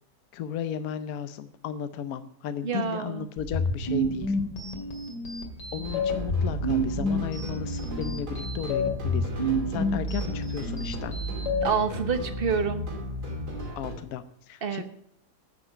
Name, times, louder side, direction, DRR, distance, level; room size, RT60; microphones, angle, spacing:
voice 1, 0.3-4.4 5.7-11.2 13.8-14.8, left 9 dB, 65° left, 11 dB, 1.1 m, -35 dB
voice 2, 2.6-3.3 11.6-12.9 14.6-14.8, right 6 dB, 40° right, 9 dB, 1.1 m, -27 dB
sound 1, 3.4-11.6, left 1 dB, 90° left, 2.8 m, -29 dB
sound 2, 5.8-13.9, right 1 dB, 70° right, 3.4 m, -34 dB
9.7 x 7.7 x 9.4 m, 0.68 s
omnidirectional pair, 1.8 m